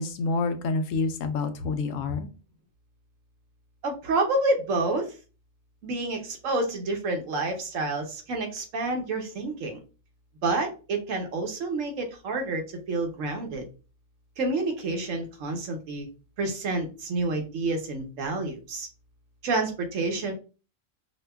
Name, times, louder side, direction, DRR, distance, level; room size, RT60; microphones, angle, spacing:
voice 1, 0.0-2.3, left 3 dB, 85° left, 8 dB, 1.0 m, -28 dB
voice 2, 3.8-5.1 5.8-9.8 10.4-13.6 14.4-16.1 16.4-18.9 19.4-20.3, right 2 dB, 80° right, 4 dB, 1.2 m, -29 dB
5.0 x 2.2 x 2.2 m, 0.34 s
omnidirectional pair, 1.3 m